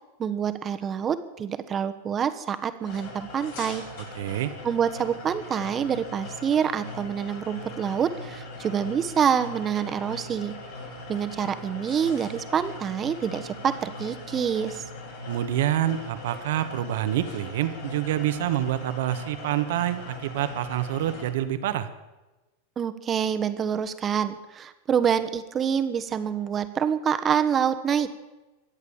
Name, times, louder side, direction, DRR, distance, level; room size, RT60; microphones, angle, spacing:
voice 1, 0.2-3.8 4.6-10.5 11.1-14.8 22.8-28.1, right 8 dB, 30° right, 10 dB, 1.3 m, -26 dB
sound 1, 2.8-21.3, left 2 dB, 70° left, 7.8 m, -40 dB
voice 2, 4.1-4.5 15.3-21.9, right 12 dB, 70° right, 11 dB, 1.4 m, -27 dB
23.0 x 8.3 x 7.2 m, 1.1 s
hypercardioid pair, 105°, 0 cm